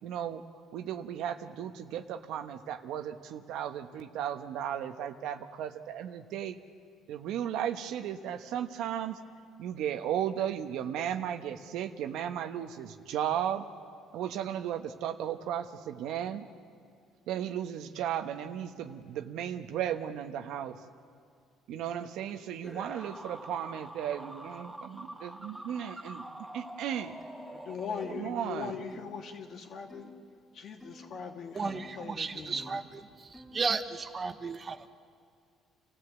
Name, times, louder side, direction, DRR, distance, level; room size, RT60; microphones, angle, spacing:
voice 1, 0.0-0.4 0.7-6.6 7.1-9.2 9.6-13.6 14.1-16.5 17.3-20.8 21.7-26.2 26.5-27.1 28.1-28.8, right 10 dB, 75° right, 8 dB, 1.1 m, -35 dB
sound 1, 22.6-28.7, right 1 dB, 5° right, 1.7 m, -45 dB
sound 2, 27.2-27.5 28.0-28.3 28.9-29.1 29.9-30.2 30.8-31.1 31.6-31.9 32.5-32.8 33.3-33.6, left 1 dB, 10° left, 2.8 m, -51 dB
voice 2, 27.5-30.1 30.5-32.8, left 6 dB, 55° left, 4 dB, 2.3 m, -40 dB
voice 3, 31.5-34.9, right 4 dB, 35° right, 9 dB, 1.1 m, -34 dB
29.0 x 15.0 x 8.2 m, 2.2 s
cardioid pair, 105°, 0 cm